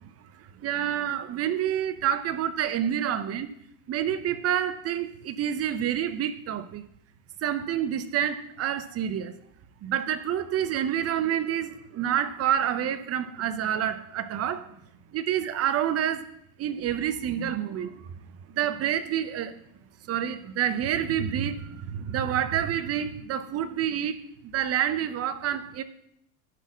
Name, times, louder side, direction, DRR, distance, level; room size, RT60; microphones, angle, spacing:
voice 1, 0.6-3.5 3.9-6.8 7.4-9.3 9.8-14.8 15.1-16.3 16.6-18.0 18.5-19.5 20.1-24.2 24.5-25.8, right 10 dB, 30° right, 12 dB, 0.7 m, -28 dB
11.0 x 4.2 x 6.1 m, 0.71 s
supercardioid pair, 130°, 48 cm